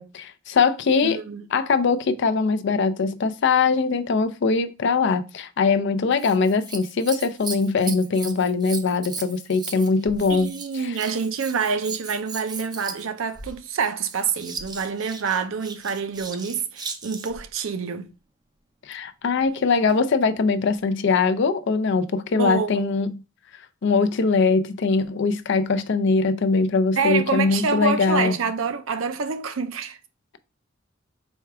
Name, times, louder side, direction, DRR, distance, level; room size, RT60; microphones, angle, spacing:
voice 1, 0.0-1.2 1.5-10.5 10.8-10.9 18.9-23.2 23.8-28.3, left 4 dB, 60° left, 0.4 m, -22 dB
voice 2, 1.0-1.4 10.3-18.1 22.4-22.9 27.0-30.0, right 5 dB, 75° right, 0.5 m, -27 dB
Scissors, 6.1-17.5 19.4-20.0 20.8-20.9, right 4 dB, 20° right, 0.4 m, -37 dB
4.4 x 2.3 x 4.6 m
head